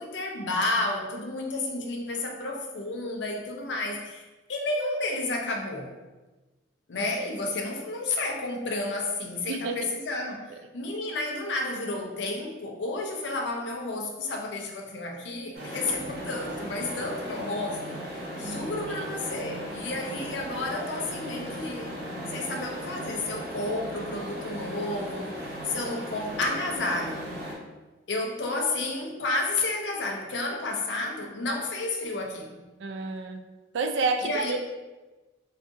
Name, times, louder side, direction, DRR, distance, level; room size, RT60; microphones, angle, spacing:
voice 1, 0.0-4.2 4.5-5.9 6.9-18.0 18.4-22.0 22.3-27.3 28.1-32.6 34.2-34.6, left 2 dB, 75° left, 1 dB, 0.5 m, -31 dB
voice 2, 9.5-9.8 19.0-19.5 32.8-33.4 33.7-34.6, right 4 dB, 80° right, 6 dB, 0.3 m, -30 dB
sound 1, 15.5-27.6, equal, 55° right, 0.7 m, -37 dB
2.5 x 2.4 x 3.6 m, 1.2 s
head